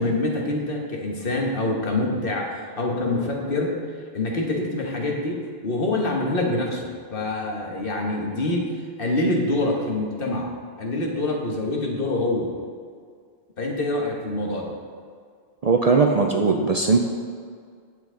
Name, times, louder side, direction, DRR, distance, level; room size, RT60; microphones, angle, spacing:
voice 1, 0.0-3.7 4.1-8.7 9.0-10.5 10.8-12.5 13.6-14.7, left 2 dB, 60° left, 0 dB, 1.4 m, -25 dB
voice 2, 15.6-17.0, right 4 dB, 45° right, 2 dB, 0.5 m, -19 dB
9.0 x 7.8 x 3.8 m, 2.1 s
omnidirectional pair, 1.1 m